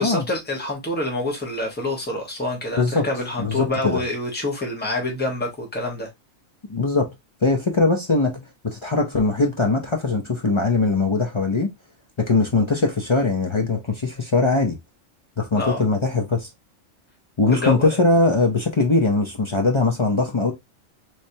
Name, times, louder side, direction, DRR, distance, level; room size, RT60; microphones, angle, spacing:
voice 1, 0.0-6.1 15.6-15.8 17.5-18.0, left 2 dB, 10° left, 1.1 m, -27 dB
voice 2, 2.8-3.1 3.4-4.0 6.7-7.1 7.4-11.7 12.2-14.8 15.4-16.5 17.4-20.5, left 3 dB, 40° left, 0.4 m, -21 dB
3.2 x 3.2 x 2.7 m
omnidirectional pair, 1.4 m